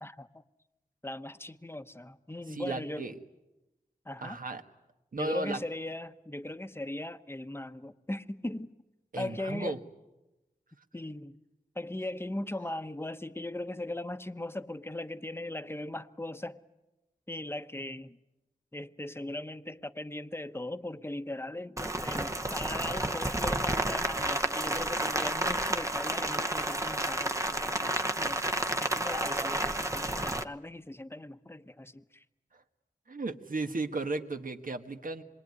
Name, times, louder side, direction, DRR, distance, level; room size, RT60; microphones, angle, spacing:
voice 1, 0.0-0.4 1.0-3.1 4.0-4.4 5.2-8.7 9.2-9.8 10.9-11.4 11.7-16.6 17.3-18.2 18.7-32.2, left 1 dB, 15° left, 1.0 m, -39 dB
voice 2, 2.5-3.1 4.2-4.6 5.1-5.6 9.1-9.8 33.1-35.2, right 2 dB, 70° right, 1.6 m, -35 dB
Rain, 21.8-30.4, right 1 dB, 20° right, 0.9 m, -31 dB
26.5 x 22.0 x 9.7 m
wide cardioid pair, 70°, 15 cm